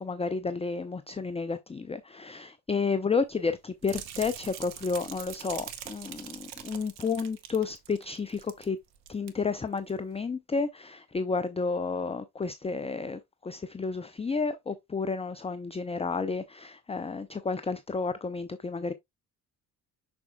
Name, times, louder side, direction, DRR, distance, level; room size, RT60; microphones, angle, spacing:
voice 1, 0.0-8.8 9.1-18.9, left 4 dB, 15° left, 0.6 m, -31 dB
sound 1, 3.8-8.7 8.9-9.3 9.8-9.9, right 10 dB, 80° right, 0.9 m, -43 dB
6.9 x 6.1 x 2.3 m
hypercardioid pair, 45°, 48 cm